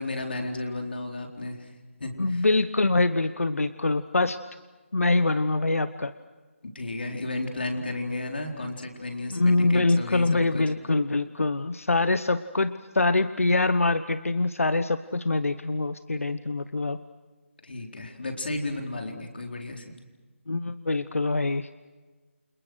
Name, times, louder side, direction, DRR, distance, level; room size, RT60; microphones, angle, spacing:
voice 1, 0.0-1.7 2.0-2.5 6.6-10.6 17.6-19.9, left 2 dB, 45° left, 2 dB, 4.2 m, -33 dB
voice 2, 2.2-4.4 4.9-6.1 9.3-17.0 20.5-21.7, left 2 dB, 85° left, 13 dB, 1.1 m, -24 dB
29.5 x 27.0 x 6.4 m, 1.3 s
figure-of-eight pair, 175°, 7 cm